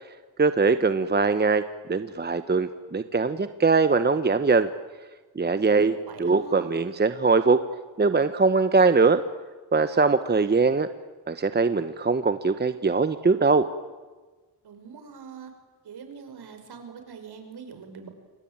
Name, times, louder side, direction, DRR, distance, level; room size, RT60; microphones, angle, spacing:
voice 1, 0.4-1.6 1.9-4.7 5.3-7.6 8.0-9.2 9.7-10.9 11.3-13.7, right 4 dB, 25° right, 11 dB, 1.1 m, -22 dB
voice 2, 5.6-6.7 14.6-15.5 15.8-18.1, right 6 dB, 65° right, 7 dB, 5.6 m, -43 dB
28.0 x 24.0 x 8.9 m, 1.3 s
cardioid pair, 95°, 42 cm